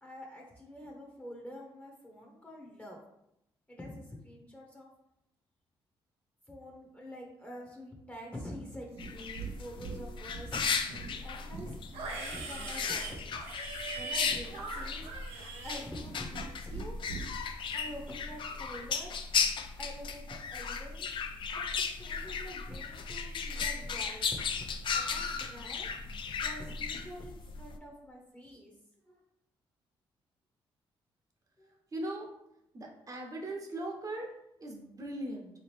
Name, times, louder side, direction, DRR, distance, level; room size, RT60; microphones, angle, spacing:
voice 1, 0.0-3.0 3.7-4.9 6.5-13.4 14.0-15.1 15.6-17.0 17.7-19.1 19.8-21.1 21.5-25.9 26.4-28.7 29.1-29.2 31.6-31.7, equal, 15° left, -1 dB, 0.9 m, -46 dB
Livestock farm animals working animals, 8.9-9.5 9.8-10.5 10.9-16.5 16.7-17.2, right 4 dB, 85° right, 0.7 m, -41 dB
sound 1, 9.0-27.8, left 5 dB, 55° left, 0.4 m, -36 dB
voice 2, 31.9-32.3 32.7-34.3 34.6-35.5, right 1 dB, 35° right, 1 dB, 0.9 m, -39 dB
3.7 x 2.9 x 3.3 m, 0.81 s
cardioid pair, 70°, 10 cm